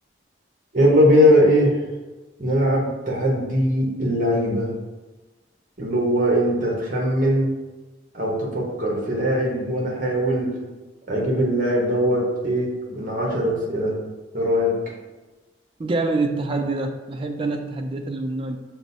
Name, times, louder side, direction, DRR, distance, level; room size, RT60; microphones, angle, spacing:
voice 1, 0.7-1.8 2.4-4.7 5.8-7.5 8.1-10.5 11.1-13.9 14.3-14.7, equal, 45° right, -2 dB, 0.9 m, -20 dB
voice 2, 15.8-18.6, right 3 dB, 30° right, 5 dB, 0.3 m, -26 dB
5.9 x 2.0 x 2.6 m, 1.2 s
head